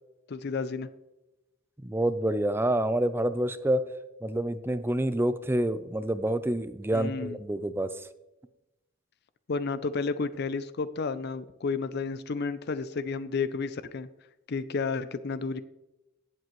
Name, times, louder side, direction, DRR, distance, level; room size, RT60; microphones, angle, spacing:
voice 1, 0.3-0.9 6.9-7.4 9.5-14.1 14.5-15.6, left 4 dB, 50° left, 14 dB, 0.4 m, -31 dB
voice 2, 1.8-3.8 4.2-8.1, right 1 dB, 10° right, 12 dB, 0.4 m, -27 dB
18.5 x 7.5 x 3.1 m, 0.97 s
head